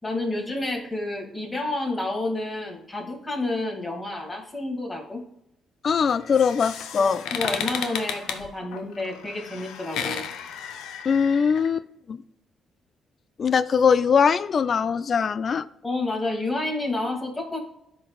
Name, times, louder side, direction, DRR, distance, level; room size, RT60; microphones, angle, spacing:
voice 1, 0.0-5.2 7.0-10.3 15.8-17.6, left 2 dB, 20° left, 2.3 m, -29 dB
voice 2, 5.8-7.2 11.0-12.2 13.4-15.7, left 6 dB, 50° left, 0.3 m, -21 dB
sound 1, 6.1-11.7, left 8 dB, 85° left, 0.6 m, -33 dB
12.0 x 4.0 x 2.3 m
cardioid pair, 90°, 0 cm